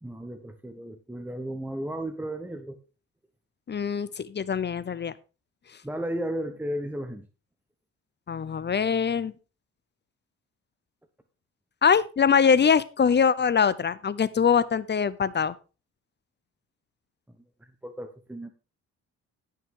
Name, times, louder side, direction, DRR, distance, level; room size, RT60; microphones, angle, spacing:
voice 1, 0.0-2.8 5.8-7.3 17.6-18.5, right 1 dB, 5° right, 7 dB, 1.1 m, -34 dB
voice 2, 3.7-5.1 8.3-9.3 11.8-15.5, left 6 dB, 35° left, 17 dB, 0.8 m, -23 dB
17.0 x 5.8 x 3.8 m, 0.32 s
cardioid pair, 90°, 30 cm